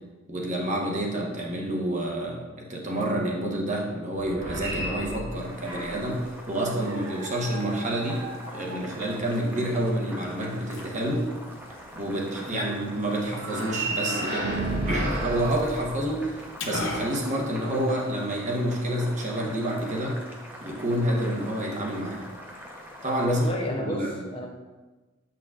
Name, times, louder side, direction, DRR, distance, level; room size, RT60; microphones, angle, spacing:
voice 1, 0.3-8.3 8.5-11.3 11.9-14.5 14.9-20.2 20.6-22.2 23.0-23.4 23.8-24.3, right 1 dB, 35° right, -1 dB, 1.0 m, -28 dB
sound 1, 4.1-6.2 6.8-9.2 13.3-16.5, right 2 dB, 65° right, 1.5 m, -33 dB
Boiling, 5.3-23.5, equal, 10° right, 0.7 m, -44 dB
Liquid, 7.2-18.2, left 2 dB, 60° left, 0.9 m, -43 dB
voice 2, 23.2-24.5, equal, 25° left, 1 dB, 0.6 m, -31 dB
7.7 x 5.9 x 2.4 m, 1.2 s
head